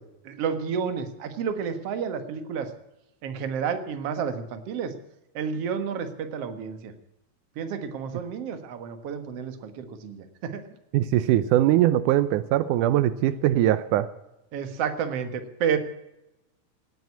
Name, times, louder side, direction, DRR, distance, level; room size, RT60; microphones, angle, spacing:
voice 1, 0.2-2.7 3.2-4.9 5.3-6.9 7.6-10.6 14.5-15.8, right 7 dB, 55° right, 9 dB, 2.3 m, -30 dB
voice 2, 10.9-14.1, right 13 dB, 85° right, 15 dB, 2.2 m, -21 dB
18.5 x 9.4 x 8.3 m, 0.91 s
omnidirectional pair, 3.5 m